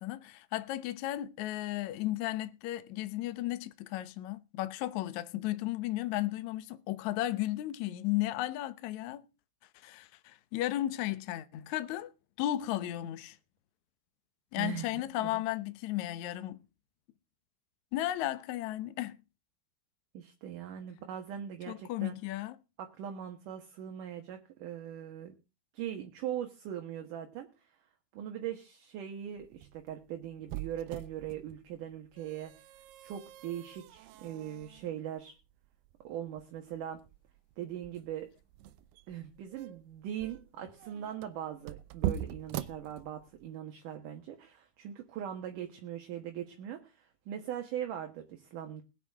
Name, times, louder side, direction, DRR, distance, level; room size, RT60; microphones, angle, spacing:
voice 1, 0.0-9.3 9.7-12.1 12.4-13.4 14.5-16.6 17.9-19.2 21.7-22.6, left 15 dB, 75° left, 1.7 m, -34 dB
voice 2, 14.6-15.4 20.1-22.2 22.8-25.3 25.7-27.7 28.1-32.5 33.0-35.4 36.0-37.0 37.6-38.3 39.1-48.8, right 10 dB, 65° right, 2.6 m, -40 dB
sound 1, 29.4-43.5, right 12 dB, 80° right, 2.7 m, -43 dB
21.0 x 8.3 x 3.5 m
omnidirectional pair, 4.6 m